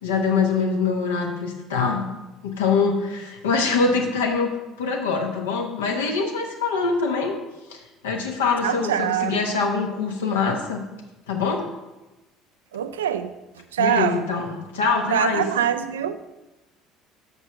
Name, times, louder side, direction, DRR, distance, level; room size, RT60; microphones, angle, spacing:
voice 1, 0.0-2.1 2.4-7.4 7.7-10.8 11.3-11.7 13.8-15.4, left 4 dB, 70° left, 2 dB, 1.0 m, -24 dB
voice 2, 8.6-9.4 12.7-13.3 13.6-14.3 15.1-16.2, right 9 dB, 70° right, 11 dB, 0.4 m, -24 dB
6.3 x 5.3 x 5.8 m, 1.0 s
figure-of-eight pair, 60°, 0 cm